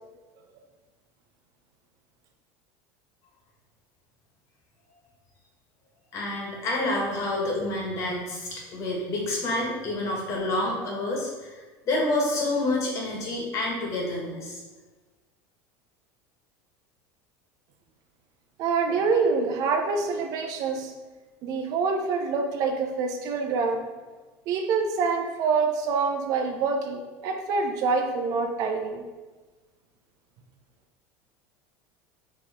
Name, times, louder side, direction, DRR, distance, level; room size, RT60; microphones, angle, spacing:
voice 1, 6.1-14.6, left 2 dB, 45° left, -2 dB, 1.4 m, -28 dB
voice 2, 18.6-20.9 21.4-23.8 24.5-29.0, right 4 dB, 55° right, 4 dB, 0.6 m, -26 dB
4.6 x 3.1 x 3.5 m, 1.3 s
supercardioid pair, 120°, 7 cm